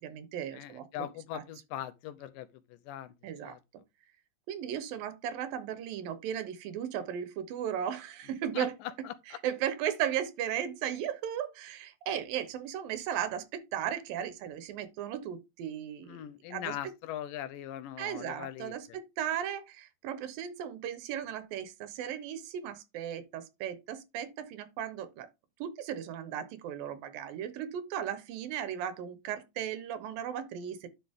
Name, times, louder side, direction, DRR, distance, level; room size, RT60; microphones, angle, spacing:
voice 1, 0.0-1.1 1.3-1.4 3.2-3.6 4.5-8.7 9.4-16.2 16.5-16.7 18.0-25.3 25.6-30.9, right 9 dB, 80° right, 2.8 m, -36 dB
voice 2, 0.5-3.1 3.4-3.6 8.5-9.4 16.1-19.0, left 12 dB, 80° left, 2.3 m, -41 dB
11.0 x 5.2 x 3.6 m
omnidirectional pair, 4.0 m